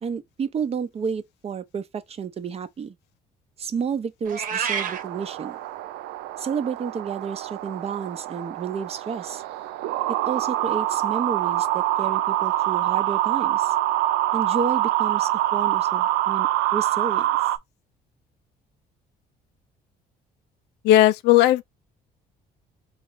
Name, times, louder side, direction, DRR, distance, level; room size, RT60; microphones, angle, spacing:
voice 1, 0.0-2.9 3.6-5.6 6.4-9.4 10.1-13.7 14.3-17.3, right 6 dB, 35° right, 0.7 m, -31 dB
Meow, 4.2-5.0, right 7 dB, 55° right, 1.1 m, -27 dB
sound 1, 4.7-17.6, right 14 dB, 90° right, 0.5 m, -25 dB
voice 2, 20.8-21.6, left 13 dB, 85° left, 0.5 m, -16 dB
3.4 x 3.3 x 3.9 m
cardioid pair, 110°, 17 cm